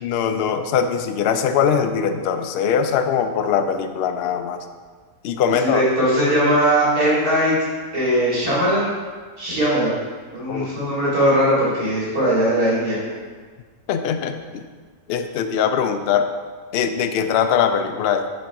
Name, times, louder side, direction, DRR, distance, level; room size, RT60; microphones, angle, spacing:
voice 1, 0.0-4.6 5.2-5.8 10.5-10.7 13.9-14.6 15.1-16.3 16.7-18.3, left 7 dB, 85° left, 7 dB, 0.5 m, -21 dB
voice 2, 5.5-7.5 7.9-8.9 9.4-10.0 10.3-13.0, equal, 80° right, -9 dB, 2.8 m, -19 dB
6.5 x 4.2 x 4.6 m, 1.5 s
omnidirectional pair, 1.6 m